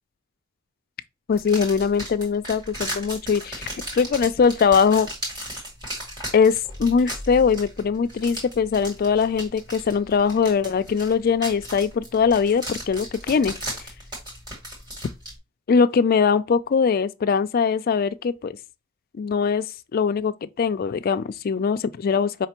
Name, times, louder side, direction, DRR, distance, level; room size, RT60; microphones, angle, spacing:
voice 1, 1.3-3.6 3.9-5.1 6.3-13.5 15.7-18.6 19.1-19.7 19.9-22.5, left 6 dB, 45° left, 0.3 m, -21 dB
sound 1, 1.3-15.3, equal, 20° right, 2.1 m, -36 dB
4.9 x 3.3 x 2.9 m
head